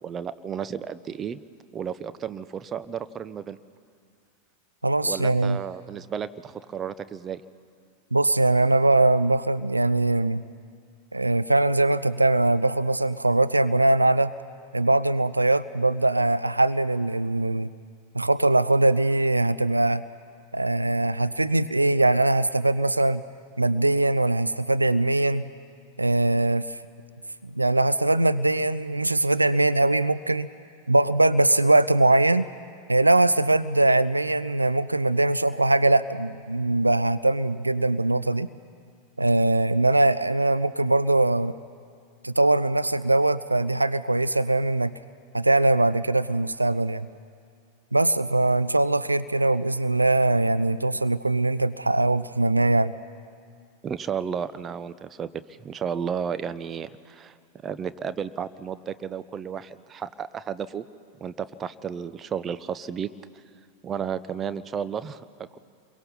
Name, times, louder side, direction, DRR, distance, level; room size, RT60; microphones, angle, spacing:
voice 1, 0.0-1.4 1.7-3.6 5.0-7.4 53.8-55.3 55.6-57.4 57.6-60.9 61.2-63.1 63.8-65.6, right 7 dB, 25° right, 14 dB, 0.8 m, -33 dB
voice 2, 4.8-5.6 8.1-10.4 11.1-14.3 14.7-17.7 18.1-20.0 20.5-23.2 23.6-25.4 26.0-26.8 27.4-30.5 30.9-32.5 32.9-38.5 39.2-41.5 42.2-44.9 45.3-47.1 47.9-52.9, right 2 dB, 85° right, 14 dB, 0.5 m, -21 dB
29.5 x 22.5 x 5.5 m, 2.2 s
figure-of-eight pair, 90°, 0 cm